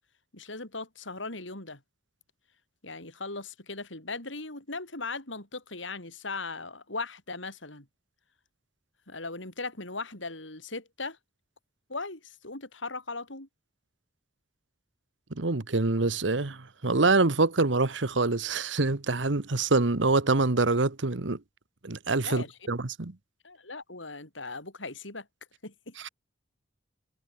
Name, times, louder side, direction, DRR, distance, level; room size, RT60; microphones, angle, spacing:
voice 1, 0.3-1.8 2.8-7.9 9.1-11.2 11.9-13.5 22.2-22.6 23.4-25.3 25.6-26.0, left 3 dB, 85° left, 7.3 m, -38 dB
voice 2, 15.4-21.4 21.8-23.1 26.0-26.1, right 3 dB, 75° right, 1.3 m, -25 dB
head